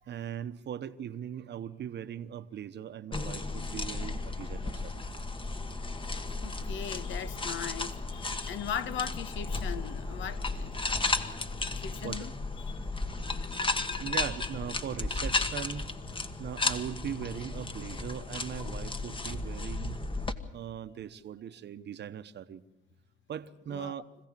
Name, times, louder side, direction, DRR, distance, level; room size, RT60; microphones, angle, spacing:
voice 1, 0.0-5.0 10.9-11.1 12.0-12.3 13.0-13.1 14.0-16.0 16.4-20.0 20.5-22.6 23.3-24.0, right 9 dB, 60° right, 1.0 m, -40 dB
sound 1, 3.1-20.3, left 3 dB, 25° left, 1.4 m, -34 dB
voice 2, 6.4-10.9 11.7-12.3 12.6-12.9 23.7-23.9, left 9 dB, 75° left, 1.1 m, -39 dB
25.5 x 16.0 x 7.5 m
cardioid pair, 90°, 20 cm